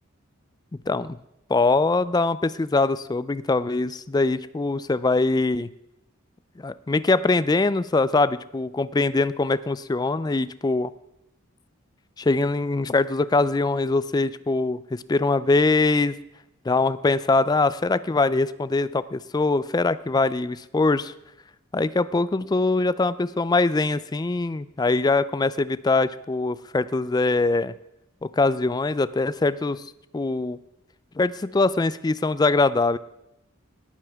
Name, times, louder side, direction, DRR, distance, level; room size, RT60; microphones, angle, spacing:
voice 1, 0.9-1.2 1.5-5.7 6.6-10.9 12.2-16.2 16.7-21.1 21.7-27.7 28.2-29.9 30.1-30.6 31.2-33.0, left 3 dB, 20° left, 16 dB, 0.3 m, -23 dB
18.5 x 9.2 x 3.5 m, 0.87 s
head